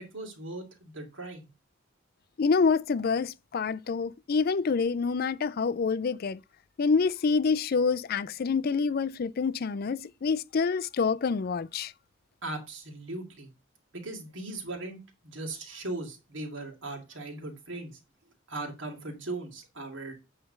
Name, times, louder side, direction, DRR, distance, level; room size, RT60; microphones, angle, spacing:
voice 1, 0.0-1.5 12.4-13.5 13.9-15.0 15.2-18.0 18.5-20.1, right 2 dB, 65° right, 2.4 m, -38 dB
voice 2, 2.4-6.4 6.8-11.9, left 5 dB, 50° left, 0.4 m, -27 dB
8.7 x 3.4 x 6.5 m
head